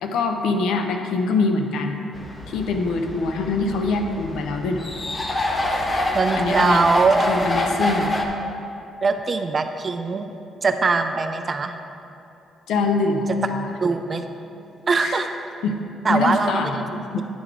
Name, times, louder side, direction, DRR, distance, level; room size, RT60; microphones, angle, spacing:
voice 1, 0.0-2.0 2.5-4.9 6.4-6.8 7.3-8.2 12.7-13.7 15.0-15.2 15.6-15.8 16.1-17.2, left 3 dB, 80° left, 4 dB, 0.5 m, -24 dB
sound 1, 2.1-8.3, left 1 dB, 30° left, 0.8 m, -26 dB
voice 2, 6.1-7.3 9.0-10.3 10.6-11.7 13.8-14.3 14.9-15.3 16.0-16.8, right 4 dB, 35° right, 7 dB, 0.4 m, -21 dB
10.5 x 3.9 x 4.6 m, 2.8 s
cardioid pair, 90°, 0 cm